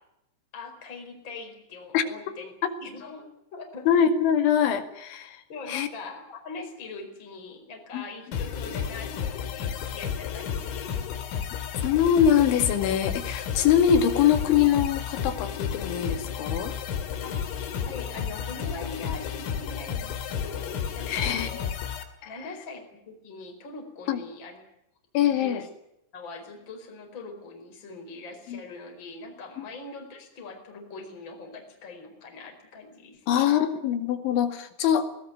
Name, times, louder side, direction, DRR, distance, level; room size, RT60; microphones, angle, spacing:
voice 1, 0.5-2.5 2.8-3.9 5.5-11.1 17.2-17.4 17.8-21.7 22.2-24.6 25.1-25.7 26.1-33.2, left 3 dB, 25° left, 3 dB, 5.0 m, -42 dB
voice 2, 3.9-5.4 5.7-5.9 7.9-8.0 11.8-16.7 21.1-21.5 22.2-22.3 24.1-24.2 25.1-25.7 28.5-28.6 29.6-29.7 33.3-35.1, left 9 dB, 70° left, 8 dB, 4.3 m, -23 dB
sound 1, 8.3-22.0, left 8 dB, 90° left, 5.0 m, -32 dB
22.0 x 19.5 x 9.1 m, 0.81 s
omnidirectional pair, 5.7 m